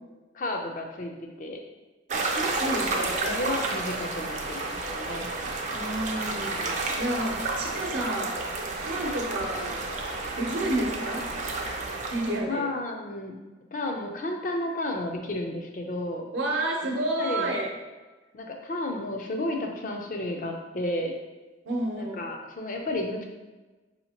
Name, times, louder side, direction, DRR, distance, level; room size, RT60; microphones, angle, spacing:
voice 1, 0.3-1.1 1.4-1.6 2.7-5.3 6.2-7.0 12.3-13.4 13.7-16.2 16.8-17.5 18.3-21.1 22.0-23.2, left 1 dB, 45° left, 2 dB, 0.5 m, -32 dB
sound 1, 2.1-12.4, right 3 dB, 40° right, 0.4 m, -31 dB
voice 2, 2.5-3.4 5.7-8.4 8.8-9.8 10.4-11.3 12.1-12.7 16.3-17.7 21.6-22.2, right 1 dB, 80° right, 0 dB, 0.7 m, -30 dB
4.9 x 2.8 x 2.8 m, 1.2 s
head